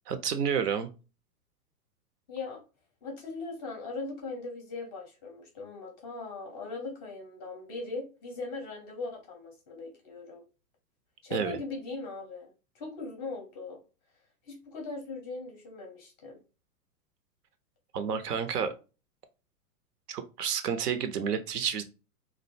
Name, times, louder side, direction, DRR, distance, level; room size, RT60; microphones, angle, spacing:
voice 1, 0.1-0.9 11.3-11.6 17.9-18.7 20.1-21.8, right 7 dB, 80° right, 9 dB, 0.6 m, -30 dB
voice 2, 2.3-2.6 3.0-10.4 11.2-13.8 14.5-16.4, left 3 dB, 20° left, 2 dB, 0.5 m, -39 dB
2.4 x 2.1 x 2.6 m, 0.31 s
hypercardioid pair, 120°, 47 cm